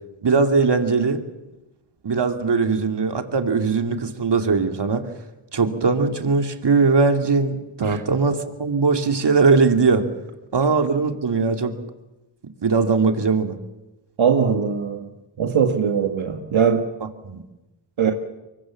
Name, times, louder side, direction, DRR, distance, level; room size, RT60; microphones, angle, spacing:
voice 1, 0.2-1.2 2.0-5.1 5.5-10.1 10.5-11.8 12.6-13.6 17.2-17.4 18.1-18.2, right 4 dB, 60° right, 6 dB, 2.6 m, -20 dB
voice 2, 14.2-15.1 15.4-16.8 18.0-18.1, right 7 dB, 80° right, 4 dB, 2.0 m, -20 dB
24.0 x 22.5 x 7.4 m, 1.0 s
cardioid pair, 65°, 47 cm